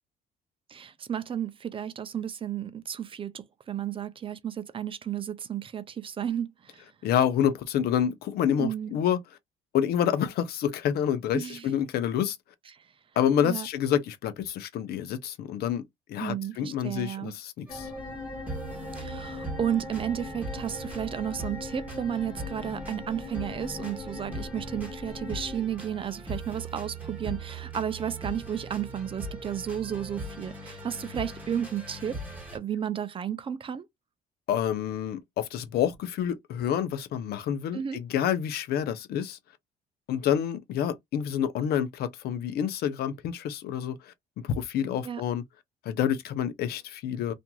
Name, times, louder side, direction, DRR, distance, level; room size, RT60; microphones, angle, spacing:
voice 1, 0.7-6.8 8.6-8.9 11.3-11.7 12.7-12.8 13.4-13.7 16.2-17.3 19.0-32.2 32.5-33.9 37.7-38.0 45.0-45.2, right 9 dB, 30° right, 0.4 m, -33 dB
voice 2, 7.0-9.2 9.7-12.4 13.2-15.8 16.1-17.9 34.5-39.4 40.1-44.1 44.4-45.4 45.8-47.3, left 9 dB, 70° left, 0.6 m, -28 dB
sound 1, 17.7-25.6, left 2 dB, 20° left, 1.0 m, -40 dB
sound 2, 17.7-32.6, right 2 dB, 10° right, 1.4 m, -40 dB
2.8 x 2.5 x 2.3 m
cardioid pair, 110°, 17 cm